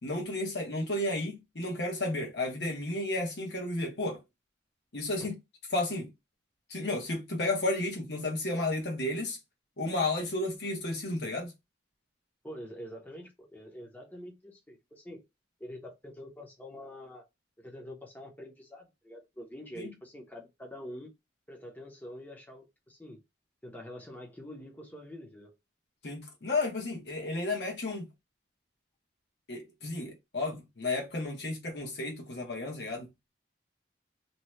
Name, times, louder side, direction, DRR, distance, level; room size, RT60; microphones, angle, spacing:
voice 1, 0.0-4.2 4.9-5.4 5.7-6.1 6.7-9.4 9.8-11.5 19.8-19.9 26.0-28.1 29.5-33.1, left 2 dB, 65° left, 1.0 m, -32 dB
voice 2, 12.4-15.2 15.6-17.2 17.6-21.1 21.5-23.2 23.6-25.6, equal, 10° left, 0.7 m, -46 dB
2.8 x 2.2 x 3.1 m
head